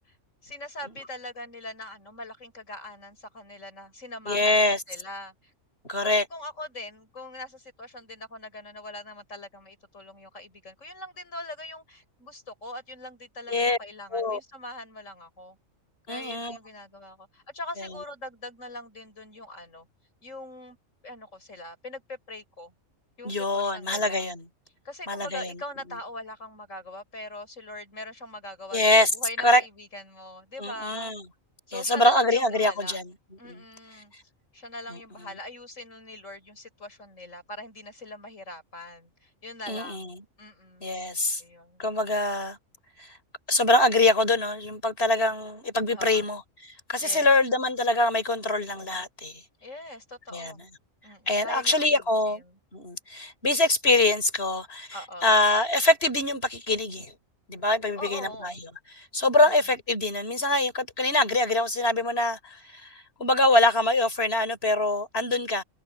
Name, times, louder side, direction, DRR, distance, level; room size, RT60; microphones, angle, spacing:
voice 1, 0.4-4.6 4.9-5.5 6.0-15.6 16.1-19.9 20.2-20.8 21.0-22.7 23.2-24.2 24.8-31.1 31.7-33.0 33.4-34.1 34.5-41.8 45.9-46.3 47.0-47.4 49.6-50.7 51.0-52.6 54.9-55.4 58.0-58.6 59.4-59.7, left 1 dB, 75° left, 6.2 m, -41 dB
voice 2, 4.3-4.8 5.9-6.2 13.5-13.8 14.1-14.4 16.1-16.6 23.2-24.5 25.1-25.6 28.7-29.1 29.4-29.6 30.6-31.2 31.7-33.1 33.4-33.6 34.9-35.0 39.7-40.2 40.8-41.4 41.8-42.6 43.0-43.1 43.5-46.4 46.9-49.4 50.3-50.5 51.3-52.4 52.7-54.9 55.2-57.1 57.5-58.5 58.9-65.6, left 2 dB, 50° left, 4.6 m, -24 dB
omnidirectional pair, 1.3 m